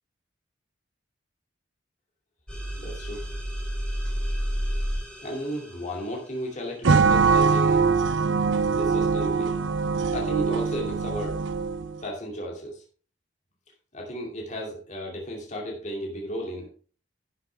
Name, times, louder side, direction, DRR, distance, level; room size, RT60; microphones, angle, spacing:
sound 1, 2.5-6.0, equal, 5° left, 3.1 m, -30 dB
voice 1, 2.8-3.3 5.2-7.9 8.7-9.6 10.1-11.4 12.0-12.8 13.9-16.7, equal, 40° left, -1 dB, 2.5 m, -34 dB
sound 2, 6.8-12.0, right 5 dB, 85° right, 0.7 m, -23 dB
11.0 x 8.1 x 3.4 m, 0.39 s
head